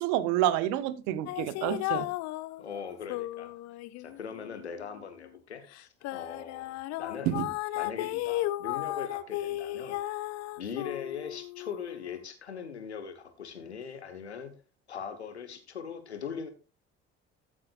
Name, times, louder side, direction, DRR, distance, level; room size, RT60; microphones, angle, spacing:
voice 1, 0.0-2.1 7.3-7.5, right 13 dB, 65° right, 0.9 m, -28 dB
sound 1, 1.3-5.3 5.7-12.2, left 16 dB, 55° left, 0.6 m, -35 dB
voice 2, 2.6-3.5 4.0-7.4 7.8-10.0 10.6-14.5 14.9-16.5, left 7 dB, 85° left, 1.1 m, -40 dB
13.5 x 7.4 x 2.4 m
figure-of-eight pair, 55°, 32 cm